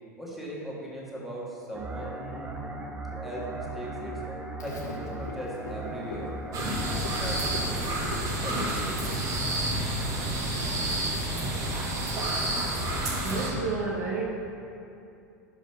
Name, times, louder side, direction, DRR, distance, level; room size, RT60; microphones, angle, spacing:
voice 1, 0.2-2.6 3.2-4.2 4.6-6.3 6.7-9.0, equal, ahead, -5 dB, 1.6 m, -39 dB
sound 1, 1.7-7.8, right 2 dB, 20° right, 0.6 m, -38 dB
Frog, 4.6-9.8, left 3 dB, 75° left, 0.9 m, -43 dB
sound 2, 6.5-13.5, right 1 dB, 40° right, 1.4 m, -29 dB
voice 2, 13.2-14.2, right 4 dB, 70° right, -3 dB, 1.3 m, -30 dB
6.1 x 5.0 x 5.5 m, 2.6 s
figure-of-eight pair, 85°, 9 cm